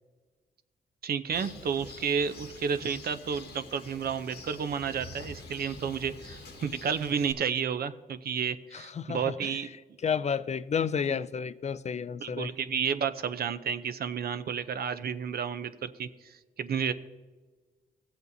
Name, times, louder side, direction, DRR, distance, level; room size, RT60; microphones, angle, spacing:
voice 1, 1.0-9.7 12.2-16.9, right 7 dB, 65° right, 0.6 m, -31 dB
Bird, 1.3-7.3, left 3 dB, 80° left, 1.4 m, -46 dB
voice 2, 8.7-9.6 10.0-12.5, left 7 dB, 40° left, 0.4 m, -31 dB
16.0 x 7.9 x 2.7 m
cardioid pair, 65°, 17 cm